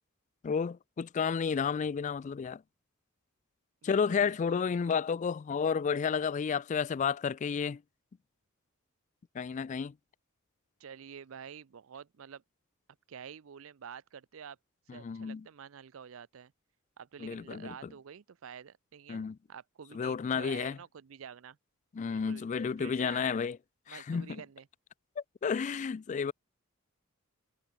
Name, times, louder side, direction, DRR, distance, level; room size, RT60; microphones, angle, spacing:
voice 1, 0.4-2.6 3.8-7.8 9.3-9.9 14.9-15.4 17.2-17.9 19.1-19.4 19.9-20.8 21.9-23.6 23.9-24.4 25.2-26.3, left 6 dB, 35° left, 0.3 m, -31 dB
voice 2, 3.8-4.7 10.8-12.4 13.1-14.6 14.9-16.5 17.0-21.6 22.1-23.4 23.9-24.7, right 7 dB, 75° right, 0.5 m, -48 dB
head